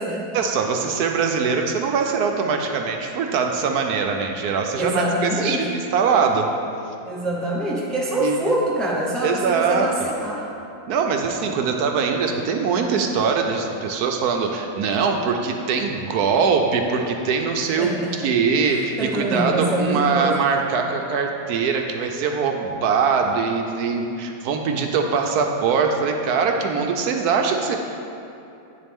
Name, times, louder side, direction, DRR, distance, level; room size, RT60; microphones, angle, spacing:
voice 1, 0.3-6.5 8.2-8.5 9.2-9.9 10.9-17.9 18.2-27.8, right 5 dB, 75° right, 3 dB, 1.1 m, -22 dB
voice 2, 4.7-5.7 7.0-10.5 17.8-18.3 18.7-20.4, right 1 dB, ahead, -4 dB, 0.7 m, -25 dB
9.1 x 7.2 x 3.5 m, 2.7 s
omnidirectional pair, 1.7 m